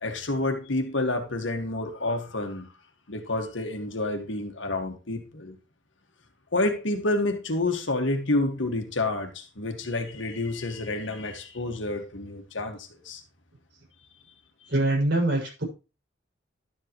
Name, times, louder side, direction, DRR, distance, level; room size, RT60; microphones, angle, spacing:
voice 1, 0.0-2.7 3.1-5.6 6.5-13.2, left 2 dB, 70° left, 1.9 m, -29 dB
voice 2, 14.7-15.6, right 1 dB, 60° right, 6.2 m, -24 dB
12.0 x 7.9 x 3.1 m
head